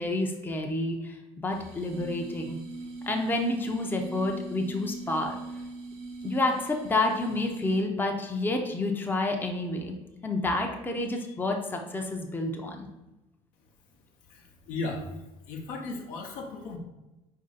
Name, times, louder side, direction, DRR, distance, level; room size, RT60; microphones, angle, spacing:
voice 1, 0.0-2.6 3.1-5.4 6.2-9.9 10.2-12.9, left 2 dB, 10° left, 2 dB, 0.7 m, -29 dB
sound 1, 1.5-8.0, right 2 dB, 70° right, 0.7 m, -41 dB
voice 2, 14.3-15.1 15.5-16.8, left 3 dB, 60° left, 1 dB, 0.9 m, -36 dB
4.8 x 2.7 x 3.9 m, 1.0 s
figure-of-eight pair, 55°, 17 cm